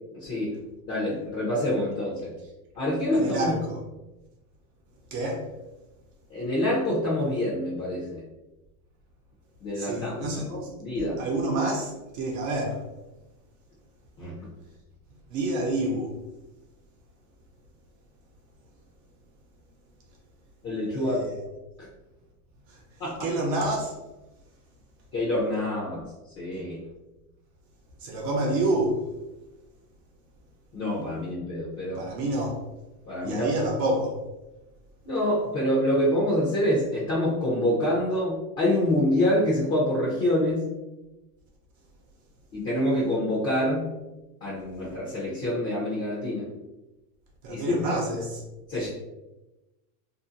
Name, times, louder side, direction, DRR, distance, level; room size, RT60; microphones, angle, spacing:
voice 1, 0.1-0.6 0.9-2.3 2.8-3.5 6.3-8.2 9.6-11.2 14.2-14.4 20.6-21.2 23.0-23.1 25.1-26.0 26.4-26.8 30.7-32.1 33.1-33.5 35.0-40.7 42.5-43.9 44.4-46.6 47.5-48.0 48.7-48.9, left 1 dB, 35° left, 0.6 m, -26 dB
voice 2, 3.1-3.8 5.1-5.5 9.7-12.8 15.3-16.2 20.9-21.4 22.7-22.8 23.2-23.9 28.0-29.0 32.0-32.6 33.2-34.2 47.4-48.4 48.7-48.9, right 2 dB, 40° right, 0.5 m, -28 dB
2.6 x 2.0 x 2.5 m
supercardioid pair, 130°, 45 cm